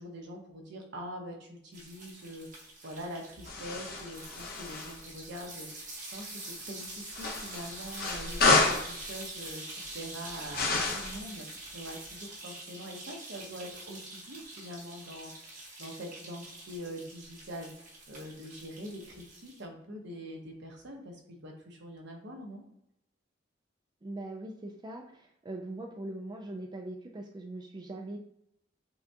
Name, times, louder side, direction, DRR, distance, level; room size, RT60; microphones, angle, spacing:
voice 1, 0.0-11.5 11.7-17.7 18.1-22.6, equal, 65° right, 1 dB, 1.0 m, -44 dB
sound 1, 1.7-19.6, right 2 dB, 45° right, 1.4 m, -45 dB
sound 2, 3.4-5.0 7.1-8.9 10.5-11.2, left 3 dB, 50° left, 0.8 m, -29 dB
voice 2, 24.0-28.2, right 2 dB, 20° right, 2 dB, 0.4 m, -41 dB
5.8 x 2.3 x 2.8 m, 0.79 s
head